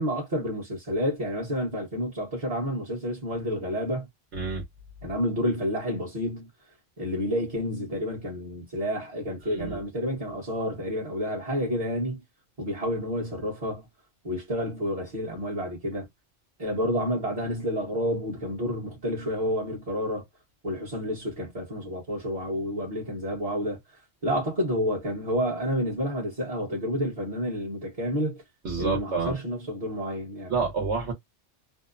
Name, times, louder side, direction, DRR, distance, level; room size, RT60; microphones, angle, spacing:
voice 1, 0.0-4.1 5.0-6.5 7.0-12.2 12.6-13.9 14.2-16.1 16.6-20.2 20.6-23.8 24.2-28.4 28.8-30.5, equal, 35° right, 1.0 m, -29 dB
voice 2, 4.3-4.6 9.5-9.8 28.6-29.3 30.5-31.1, right 5 dB, 65° right, 1.1 m, -28 dB
2.7 x 2.0 x 2.4 m
omnidirectional pair, 1.2 m